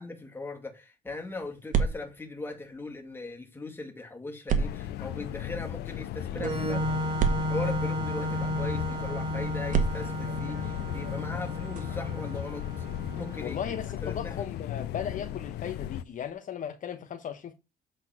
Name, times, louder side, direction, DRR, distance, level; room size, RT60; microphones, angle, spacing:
voice 1, 0.0-7.1 7.5-12.9 13.1-13.8 14.0-14.4, left 3 dB, 15° left, 2.2 m, -39 dB
sound 1, 1.1-3.4 4.5-8.4 9.6-16.3, right 6 dB, 50° right, 1.6 m, -35 dB
sound 2, 4.6-16.0, left 12 dB, 75° left, 0.6 m, -36 dB
Organ, 6.4-13.9, equal, 30° right, 2.6 m, -33 dB
voice 2, 13.4-17.5, left 8 dB, 50° left, 1.1 m, -36 dB
8.0 x 4.2 x 5.9 m
cardioid pair, 110°, 17 cm